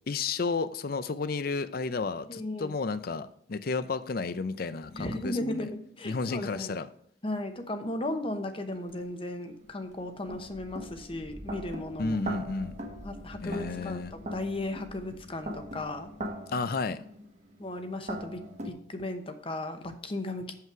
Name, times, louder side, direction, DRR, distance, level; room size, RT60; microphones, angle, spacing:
voice 1, 0.1-5.7 6.0-6.9 12.0-12.7 13.4-14.1 16.5-17.0, left 4 dB, 50° left, 0.5 m, -32 dB
voice 2, 2.3-2.8 4.9-6.7 7.2-12.2 13.0-16.1 17.6-20.5, left 1 dB, 30° left, 0.9 m, -36 dB
sound 1, 8.9-9.0 9.7-18.7, equal, 40° right, 1.2 m, -41 dB
7.5 x 5.8 x 4.7 m
head